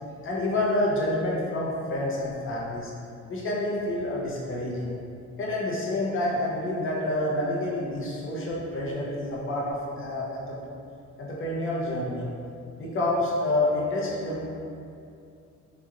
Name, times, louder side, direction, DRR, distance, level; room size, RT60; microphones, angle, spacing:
voice 1, 0.2-2.9 3.3-4.9 5.4-10.6 11.2-12.3 12.8-14.6, left 1 dB, 40° left, -5 dB, 0.6 m, -28 dB
2.9 x 2.3 x 2.4 m, 2.5 s
cardioid pair, 105°, 31 cm